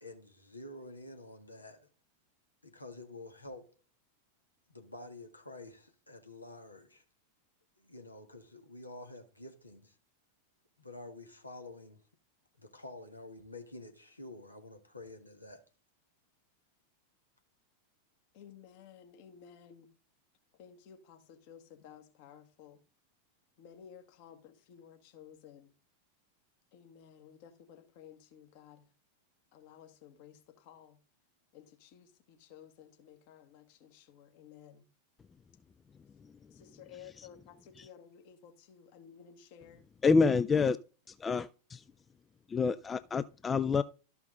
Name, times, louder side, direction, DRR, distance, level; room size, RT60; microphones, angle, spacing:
voice 1, 0.0-1.9 2.6-3.7 4.7-7.0 7.8-10.0 10.8-12.0 12.6-15.6, left 2 dB, 85° left, 1.7 m, -49 dB
voice 2, 18.3-19.9 20.6-22.8 23.6-25.7 26.7-28.9 29.5-31.0 31.5-34.9 36.5-39.8, left 8 dB, 45° left, 1.6 m, -55 dB
voice 3, 40.0-40.8 41.2-41.8 42.5-43.8, left 4 dB, 20° left, 0.4 m, -27 dB
13.0 x 5.8 x 3.8 m
figure-of-eight pair, 90°, 0 cm